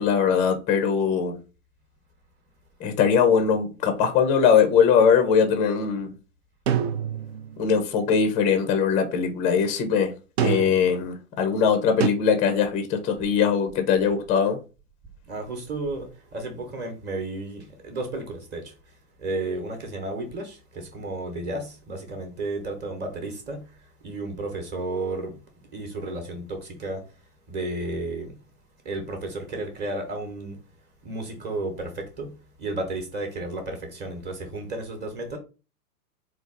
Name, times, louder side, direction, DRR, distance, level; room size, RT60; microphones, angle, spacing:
voice 1, 0.0-1.4 2.8-6.1 7.6-10.1 10.4-14.6, left 6 dB, 15° left, 0.5 m, -21 dB
sound 1, 6.7-7.6 10.4-11.0 12.0-12.1, right 9 dB, 45° right, 0.5 m, -26 dB
voice 2, 15.3-25.4 25.7-27.1 27.5-28.4 28.8-30.6 31.0-35.4, right 2 dB, 25° right, 1.0 m, -33 dB
3.9 x 2.4 x 3.7 m
hypercardioid pair, 110°, 45 cm